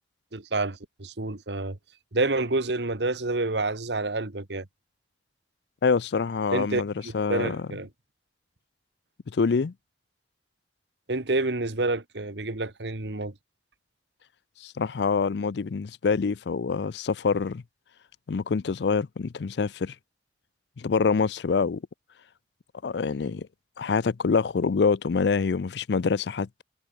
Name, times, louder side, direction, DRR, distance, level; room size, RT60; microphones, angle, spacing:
voice 1, 0.3-1.8 2.1-4.6 6.5-7.9 11.1-13.3, right 2 dB, 75° right, 1.6 m, -28 dB
voice 2, 5.8-7.7 9.3-9.7 14.6-17.6 18.3-19.9 20.8-21.8 22.8-23.5 23.8-26.6, left 5 dB, 70° left, 0.5 m, -26 dB
head